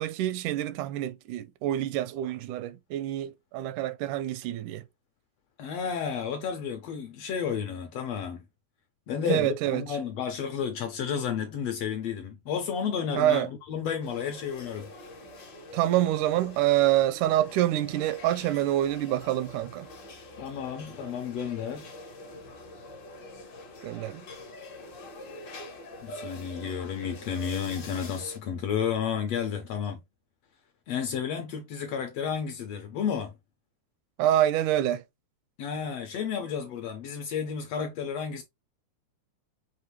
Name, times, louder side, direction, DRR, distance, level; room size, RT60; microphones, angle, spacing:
voice 1, 0.0-4.8 9.2-9.8 13.2-13.5 15.7-19.9 23.8-24.2 34.2-35.0, right 13 dB, 85° right, 2.1 m, -26 dB
voice 2, 5.6-8.4 9.1-14.9 20.4-21.9 26.0-30.0 30.9-33.3 35.6-38.4, left 7 dB, 75° left, 1.6 m, -32 dB
sound 1, 14.0-28.4, left 2 dB, 55° left, 1.1 m, -45 dB
5.6 x 2.6 x 3.1 m
omnidirectional pair, 3.5 m